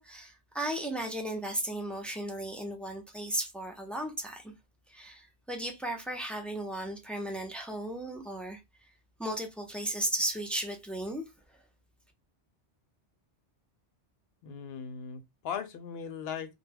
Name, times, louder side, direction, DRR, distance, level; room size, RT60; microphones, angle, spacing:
voice 1, 0.0-4.5 4.9-8.6 9.2-11.2, right 1 dB, ahead, 0.4 m, -35 dB
voice 2, 14.4-16.5, left 7 dB, 65° left, 0.7 m, -38 dB
2.2 x 2.2 x 3.3 m
omnidirectional pair, 1.2 m